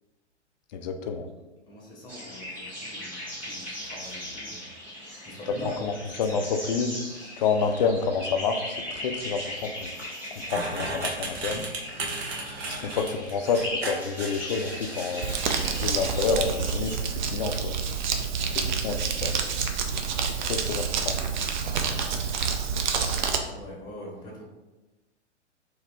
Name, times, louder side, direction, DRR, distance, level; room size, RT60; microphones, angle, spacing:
voice 1, 0.7-1.3 5.8-7.0 7.4-9.9 10.5-11.7 12.8-15.3 15.7-17.8 18.5-19.4 20.4-21.2, left 5 dB, 40° left, 6 dB, 0.4 m, -28 dB
voice 2, 1.6-4.7 5.2-5.9 6.1-6.4 18.6-18.8 23.4-24.4, left 1 dB, 10° left, -4 dB, 1.1 m, -43 dB
sound 1, 2.1-17.0, left 1 dB, 5° right, 1.4 m, -38 dB
sound 2, 10.4-15.3, right 2 dB, 60° right, 0.9 m, -35 dB
Crumpling crinkling, 15.2-23.4, right 6 dB, 40° right, 0.4 m, -28 dB
3.7 x 2.8 x 3.1 m, 1.1 s
figure-of-eight pair, 115°, 36 cm